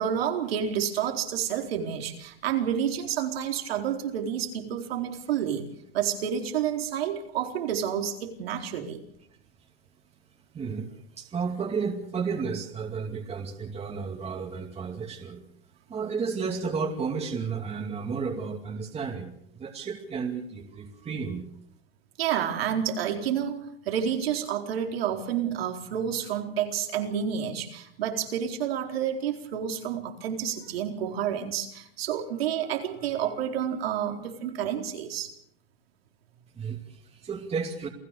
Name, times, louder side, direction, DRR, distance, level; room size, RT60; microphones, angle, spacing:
voice 1, 0.0-5.7 5.9-9.0 22.2-35.3, right 9 dB, 85° right, 4 dB, 4.4 m, -29 dB
voice 2, 10.5-15.4 15.9-21.5 36.6-37.9, right 5 dB, 20° right, 3 dB, 2.5 m, -32 dB
29.0 x 17.5 x 6.8 m, 0.73 s
supercardioid pair, 130°, 29 cm